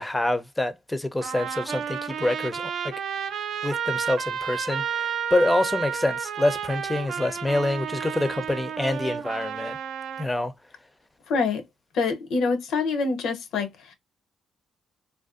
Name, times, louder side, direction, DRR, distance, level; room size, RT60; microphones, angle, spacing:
voice 1, 0.0-2.9 3.6-9.8 10.2-10.5, left 1 dB, 10° left, 0.4 m, -26 dB
Trumpet, 1.2-10.3, right 7 dB, 65° right, 0.4 m, -31 dB
voice 2, 11.3-11.6 11.9-13.9, left 4 dB, 80° left, 0.5 m, -26 dB
2.5 x 2.2 x 2.4 m
cardioid pair, 90°, 0 cm